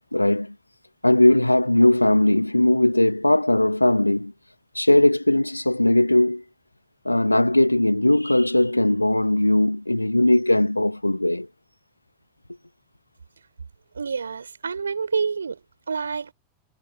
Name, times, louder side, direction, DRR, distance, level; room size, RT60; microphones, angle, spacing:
voice 1, 0.1-0.5 1.0-4.3 4.7-6.4 7.0-11.5, left 1 dB, 85° left, 1.0 m, -19 dB
voice 2, 13.9-16.3, right 5 dB, 75° right, 5.9 m, -28 dB
figure-of-eight pair, 90°, 0 cm